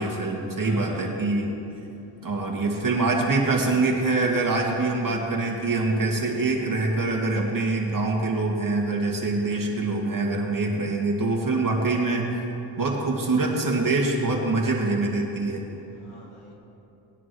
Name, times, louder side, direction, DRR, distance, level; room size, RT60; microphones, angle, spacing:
voice 1, 0.0-1.5 2.2-12.3 12.8-15.6, right 3 dB, 40° right, -1 dB, 2.2 m, -24 dB
voice 2, 0.6-1.1 12.7-12.8 15.9-16.5, right 1 dB, 85° left, -2 dB, 2.5 m, -45 dB
19.5 x 10.0 x 3.2 m, 2.8 s
cardioid pair, 75°, 49 cm